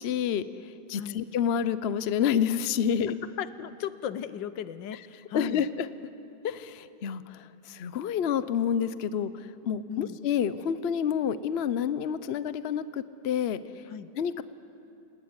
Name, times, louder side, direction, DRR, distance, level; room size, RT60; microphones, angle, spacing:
voice 1, 0.0-3.1 5.3-5.9 6.4-13.8 14.1-14.4, left 8 dB, 60° left, 14 dB, 0.6 m, -29 dB
voice 2, 3.4-5.7 9.9-10.2 13.9-14.1, left 9 dB, 80° left, 13 dB, 1.5 m, -36 dB
29.0 x 18.0 x 9.6 m, 2.9 s
omnidirectional pair, 2.0 m